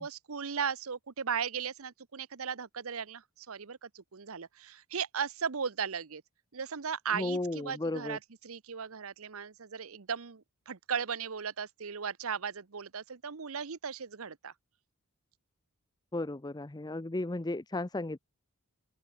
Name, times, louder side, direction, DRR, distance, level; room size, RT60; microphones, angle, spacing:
voice 1, 0.0-6.2 6.5-14.5, right 6 dB, 70° right, 0.9 m, -37 dB
voice 2, 7.1-8.2 16.1-18.2, left 2 dB, 20° left, 0.6 m, -34 dB
open air
head